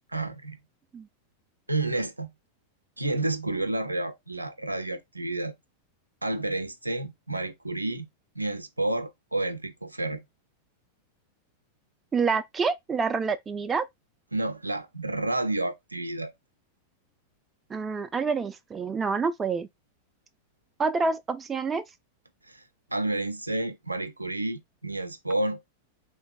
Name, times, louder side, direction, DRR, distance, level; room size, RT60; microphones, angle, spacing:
voice 1, 0.1-0.6 1.7-2.3 3.0-5.5 6.2-8.1 8.4-10.2 14.3-16.3 22.5-22.6 22.9-25.6, right 2 dB, 85° right, 0.4 m, -30 dB
voice 2, 12.1-13.9 17.7-19.7 20.8-21.8, right 5 dB, 20° right, 0.3 m, -27 dB
3.2 x 2.5 x 2.2 m
figure-of-eight pair, 90°, 0 cm